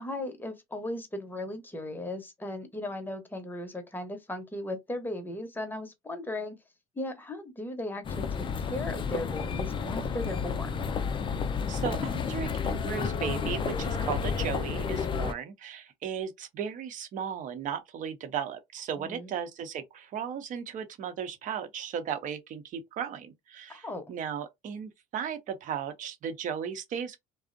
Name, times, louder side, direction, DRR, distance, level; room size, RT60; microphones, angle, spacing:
voice 1, 0.0-6.5 7.0-8.3 8.6-10.8 19.0-19.3 23.7-24.0, left 1 dB, 10° left, 0.8 m, -37 dB
sound 1, 8.0-15.3, left 6 dB, 30° left, 0.4 m, -31 dB
voice 2, 11.7-27.2, right 8 dB, 50° right, 0.7 m, -36 dB
2.5 x 2.0 x 2.5 m
supercardioid pair, 85°, 17 cm